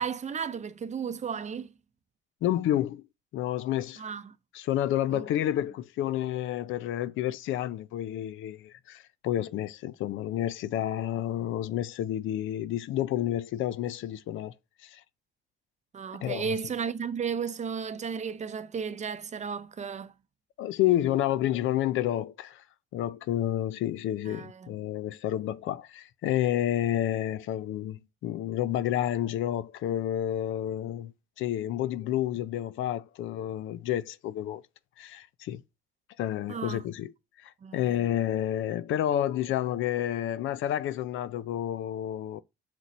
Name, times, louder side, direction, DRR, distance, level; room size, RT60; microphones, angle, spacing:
voice 1, 0.0-1.7 4.0-4.3 5.1-5.3 15.9-20.1 24.2-24.7 36.5-36.8 37.6-37.9, right 6 dB, 35° right, 0.6 m, -34 dB
voice 2, 2.4-3.0 3.3-4.0 4.5-14.5 14.8-15.0 16.2-16.6 20.6-22.6 22.9-34.6 35.0-35.6 36.2-37.1 37.4-42.4, left 12 dB, 80° left, 0.5 m, -30 dB
6.2 x 4.0 x 4.1 m
cardioid pair, 90°, 20 cm